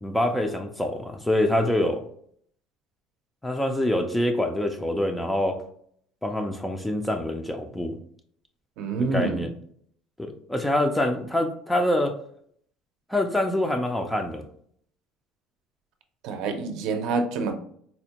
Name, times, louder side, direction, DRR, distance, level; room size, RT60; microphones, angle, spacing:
voice 1, 0.0-2.0 3.4-5.6 6.2-8.0 9.1-9.5 10.2-12.2 13.1-14.4, left 1 dB, 5° left, 5 dB, 0.3 m, -25 dB
voice 2, 8.8-9.5 16.2-17.5, right 4 dB, 65° right, 6 dB, 0.5 m, -27 dB
4.1 x 2.1 x 2.8 m, 0.64 s
cardioid pair, 165°, 0 cm